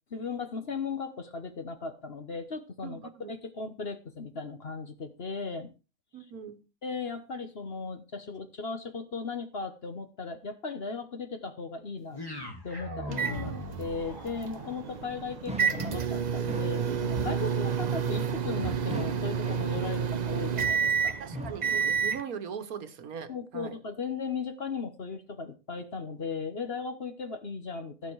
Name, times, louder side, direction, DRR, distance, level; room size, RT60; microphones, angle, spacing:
voice 1, 0.1-3.0 3.3-5.7 6.8-12.2 12.6-13.5 13.8-21.2 23.3-28.1, left 4 dB, 45° left, 1.3 m, -37 dB
voice 2, 2.8-3.3 6.1-6.6 13.1-13.6 21.2-23.8, right 7 dB, 85° right, 1.7 m, -40 dB
sound 1, 12.1-20.3, left 1 dB, 15° left, 2.3 m, -43 dB
sound 2, 13.1-13.7 14.7-14.8 15.4-16.1 16.5-17.5 18.6-20.0 21.1-21.9, right 1 dB, 5° right, 1.4 m, -40 dB
sound 3, 13.1-22.2, right 7 dB, 45° right, 0.6 m, -30 dB
15.5 x 7.3 x 4.7 m
omnidirectional pair, 1.5 m